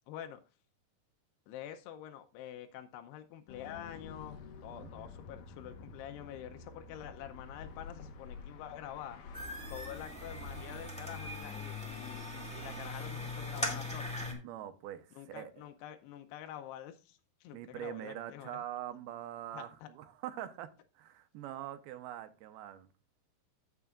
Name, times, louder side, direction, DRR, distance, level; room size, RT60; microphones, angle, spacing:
voice 1, 0.1-0.4 1.5-9.2 9.7-14.4 15.2-18.6 19.5-19.9, left 11 dB, 85° left, 2.8 m, -47 dB
sound 1, 3.5-10.8, left 5 dB, 65° left, 2.5 m, -49 dB
sound 2, 9.3-14.3, left 2 dB, 5° left, 0.9 m, -40 dB
voice 2, 14.3-15.5 17.5-20.7 21.0-22.9, right 11 dB, 80° right, 2.6 m, -43 dB
15.0 x 6.7 x 2.4 m
omnidirectional pair, 4.6 m